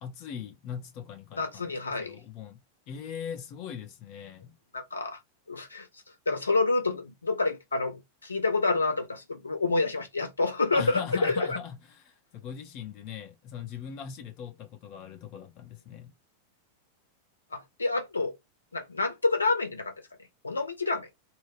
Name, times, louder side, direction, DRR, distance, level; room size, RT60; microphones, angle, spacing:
voice 1, 0.0-4.6 10.7-16.1, left 8 dB, 40° left, 0.6 m, -40 dB
voice 2, 1.3-2.2 4.7-5.2 5.5-5.9 6.3-11.6 17.5-18.3 18.7-19.9 20.4-21.1, left 3 dB, 75° left, 0.7 m, -28 dB
2.3 x 2.1 x 3.3 m
figure-of-eight pair, 90°, 0 cm